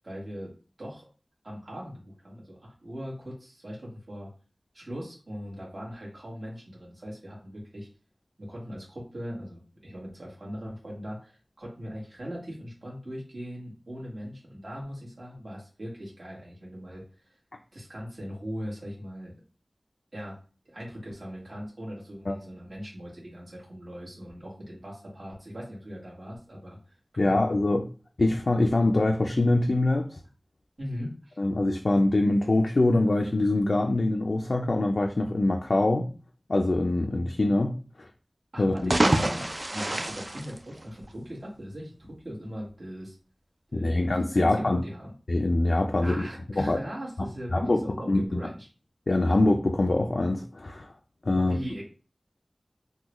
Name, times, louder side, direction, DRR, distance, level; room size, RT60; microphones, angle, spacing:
voice 1, 0.0-0.5 0.8-1.1 1.4-4.3 4.7-7.9 8.4-17.3 17.7-19.3 20.1-20.4 20.6-27.5 30.8-31.4 38.5-41.9 42.2-43.2 43.7-45.1 46.0-48.7 51.4-51.8, equal, 60° right, 1.4 m, -40 dB
voice 2, 27.2-27.9 28.2-30.2 31.4-36.1 36.5-37.7 38.0-38.1 38.6-38.9 43.8-44.8 45.3-46.3 46.6-46.8 47.5-47.8 48.1-48.4 49.1-50.9 51.2-51.6, left 2 dB, 65° left, 0.3 m, -24 dB
sound 1, 38.7-41.3, right 1 dB, 45° right, 0.3 m, -27 dB
3.7 x 2.2 x 3.0 m
wide cardioid pair, 65°, 0 cm